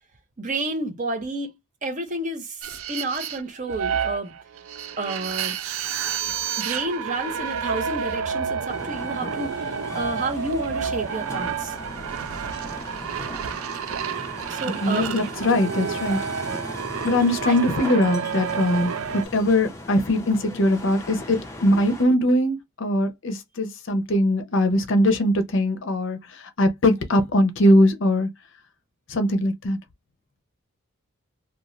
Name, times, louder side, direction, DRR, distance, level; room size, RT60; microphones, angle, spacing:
voice 1, 0.4-1.6 1.8-4.3 5.0-5.6 6.6-11.8 14.5-15.3 17.4-17.9, right 2 dB, 35° right, 0.6 m, -30 dB
sound 1, 2.6-19.3, right 7 dB, 70° right, 0.4 m, -30 dB
sound 2, 8.7-22.1, left 1 dB, 15° left, 0.5 m, -39 dB
voice 2, 14.8-16.2 17.0-28.3 29.1-29.8, left 1 dB, 55° left, 0.6 m, -21 dB
2.5 x 2.3 x 3.0 m
head